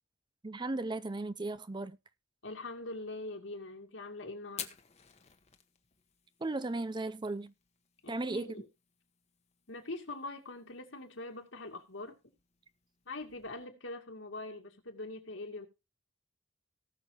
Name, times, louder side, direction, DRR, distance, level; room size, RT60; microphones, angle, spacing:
voice 1, 0.4-2.0 6.4-7.5 8.1-8.5, right 2 dB, 25° right, 0.5 m, -36 dB
voice 2, 2.4-4.8 8.0-8.7 9.7-12.2 13.1-15.7, left 2 dB, 70° left, 2.4 m, -43 dB
Fire, 4.5-13.7, left 9 dB, 35° left, 1.2 m, -53 dB
18.5 x 6.4 x 3.0 m
head